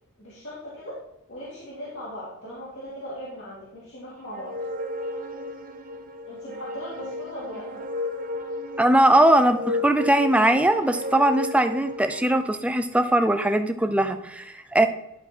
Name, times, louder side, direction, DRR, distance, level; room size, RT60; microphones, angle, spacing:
voice 1, 0.2-1.0 1.3-4.6 6.2-7.8, equal, 60° left, -7 dB, 2.3 m, -38 dB
sound 1, 4.3-12.4, left 2 dB, 40° right, 0.9 m, -34 dB
voice 2, 8.8-14.9, right 1 dB, 5° right, 8 dB, 0.5 m, -20 dB
11.0 x 4.5 x 4.3 m, 0.87 s
head